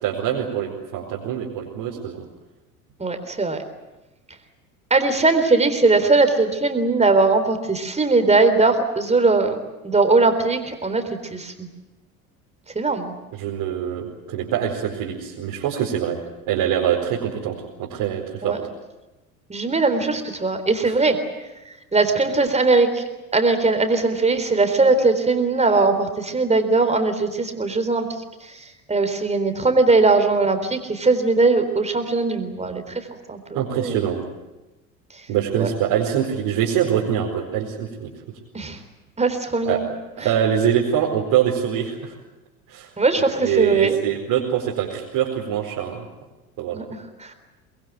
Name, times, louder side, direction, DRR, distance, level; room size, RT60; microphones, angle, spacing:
voice 1, 0.0-2.3 13.3-16.2 16.5-18.6 20.8-20.9 33.5-34.2 35.3-38.1 39.6-39.8 40.2-42.1 42.7-42.9 43.2-46.0 46.6-46.8, right 9 dB, 55° right, -4 dB, 4.7 m, -24 dB
voice 2, 3.0-3.6 4.9-11.0 11.3-11.7 12.8-13.1 18.4-18.6 19.5-21.2 21.9-23.0 23.3-28.1 28.4-33.4 33.7-34.0 35.1-35.2 35.6-35.7 38.5-38.8 39.2-39.8 43.0-44.0 46.7-47.3, right 3 dB, 15° right, 8 dB, 3.8 m, -20 dB
24.0 x 21.5 x 9.3 m, 1.0 s
figure-of-eight pair, 70°, 44 cm